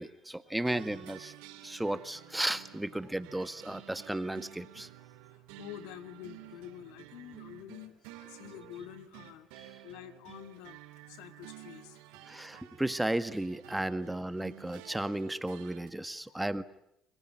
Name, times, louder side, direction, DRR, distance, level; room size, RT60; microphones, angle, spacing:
voice 1, 0.0-1.3 1.6-4.9 9.6-9.7 12.3-16.6, right 1 dB, 10° right, 12 dB, 1.7 m, -34 dB
sound 1, 0.6-15.9, right 15 dB, 85° right, 3.1 m, -52 dB
voice 2, 5.3-9.5 9.8-12.5 16.3-16.5, left 12 dB, 80° left, 11 dB, 1.9 m, -48 dB
28.5 x 21.0 x 9.4 m, 0.79 s
supercardioid pair, 70°, 0 cm